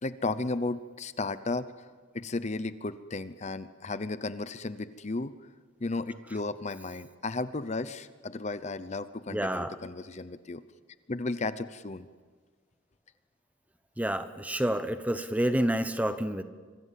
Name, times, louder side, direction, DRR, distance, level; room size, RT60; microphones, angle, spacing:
voice 1, 0.0-1.9 2.1-5.3 5.8-10.6 11.1-12.1, left 3 dB, 35° left, 13 dB, 0.7 m, -34 dB
voice 2, 9.3-9.8 14.0-16.4, right 1 dB, 5° right, 10 dB, 0.9 m, -29 dB
25.5 x 24.5 x 7.6 m, 1.5 s
head